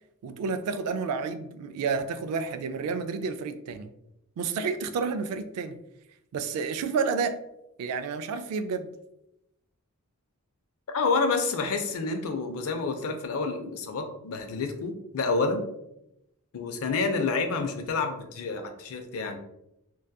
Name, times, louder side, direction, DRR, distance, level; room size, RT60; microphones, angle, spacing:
voice 1, 0.2-3.9 4.4-5.8 6.3-7.4 7.8-8.9, right 5 dB, 85° right, 10 dB, 0.3 m, -30 dB
voice 2, 10.9-15.6 16.5-19.4, left 4 dB, 65° left, 6 dB, 0.4 m, -28 dB
2.6 x 2.3 x 2.2 m, 0.84 s
head